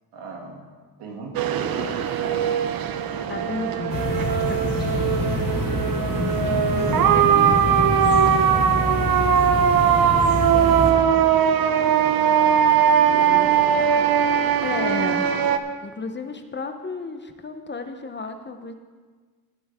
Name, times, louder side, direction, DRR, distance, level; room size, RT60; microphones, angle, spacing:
voice 1, 0.1-0.6 1.0-2.6 4.6-5.8 6.9-7.2 7.5-9.4 10.5-11.5 13.1-13.7, right 3 dB, 90° right, -1 dB, 2.6 m, -38 dB
sound 1, 1.3-15.6, right 8 dB, 60° right, 0.8 m, -20 dB
voice 2, 3.3-4.6 6.7-7.6 14.6-15.2 15.8-18.7, left 3 dB, 25° left, 7 dB, 0.9 m, -32 dB
sound 2, 3.9-10.9, left 2 dB, 55° left, 3.3 m, -26 dB
19.0 x 7.8 x 3.7 m, 1.4 s
cardioid pair, 100°, 40 cm